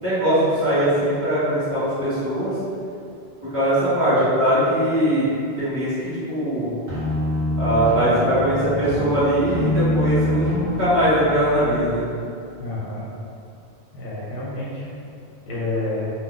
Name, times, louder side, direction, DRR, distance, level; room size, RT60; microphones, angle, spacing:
voice 1, 0.0-2.6 3.4-5.3 5.6-6.7 7.6-12.0, right 1 dB, 20° right, -17 dB, 1.1 m, -21 dB
sound 1, 6.9-12.0, left 1 dB, 50° right, 1.0 m, -25 dB
voice 2, 12.6-13.0 13.9-14.9 15.5-16.1, left 2 dB, 50° left, -7 dB, 0.9 m, -28 dB
2.5 x 2.3 x 3.7 m, 2.4 s
omnidirectional pair, 1.1 m